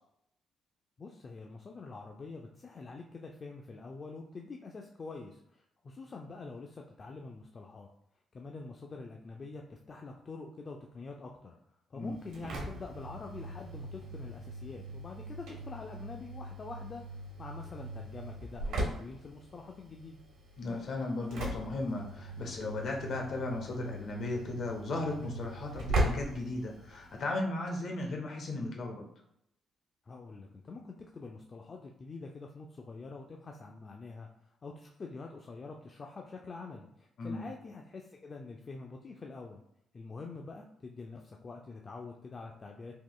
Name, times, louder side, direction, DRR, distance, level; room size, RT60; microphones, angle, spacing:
voice 1, 1.0-7.9 8.3-11.6 11.9-17.0 17.4-20.2 30.0-39.6 39.9-43.0, left 3 dB, 35° left, 1 dB, 0.4 m, -46 dB
Engine / Slam, 12.1-27.2, right 1 dB, 75° right, 1.0 m, -39 dB
voice 2, 20.6-29.0 37.2-37.4, left 2 dB, 60° left, 1 dB, 0.9 m, -36 dB
3.6 x 2.9 x 2.3 m, 0.76 s
cardioid pair, 90°, 0 cm